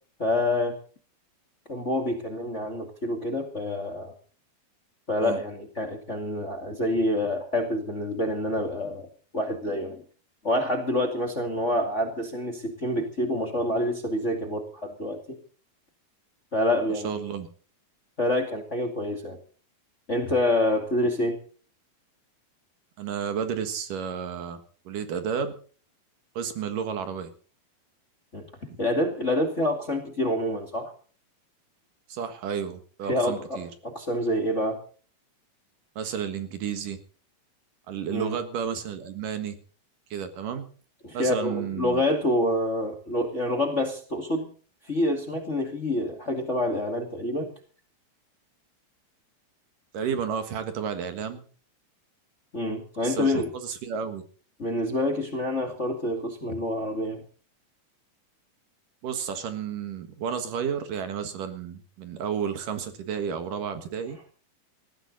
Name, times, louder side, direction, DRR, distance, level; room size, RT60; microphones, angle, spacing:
voice 1, 0.2-0.7 1.7-4.1 5.1-9.1 9.3-10.0 10.4-15.4 16.5-17.2 18.2-19.4 20.1-21.4 28.3-28.5 28.8-30.9 33.1-34.8 38.1-38.4 41.0-44.5 44.9-47.5 52.5-53.5 54.6-57.2, left 1 dB, 25° left, 4 dB, 2.0 m, -27 dB
voice 2, 17.0-17.5 23.0-25.5 26.3-27.3 28.7-28.8 32.1-33.7 36.0-37.0 37.9-39.6 40.1-40.7 41.1-42.0 49.9-51.4 53.0-54.2 59.0-64.2, right 7 dB, 65° right, 9 dB, 3.1 m, -32 dB
20.0 x 15.5 x 4.1 m, 0.41 s
omnidirectional pair, 4.2 m